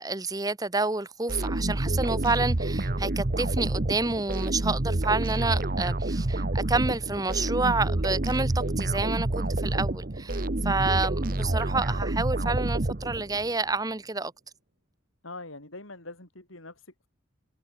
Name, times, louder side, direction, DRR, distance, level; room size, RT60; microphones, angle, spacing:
voice 1, 0.0-14.3, right 3 dB, 20° right, 1.0 m, -29 dB
sound 1, 1.3-13.5, right 2 dB, 45° right, 1.1 m, -28 dB
voice 2, 15.2-17.1, left 2 dB, 80° left, 6.7 m, -43 dB
head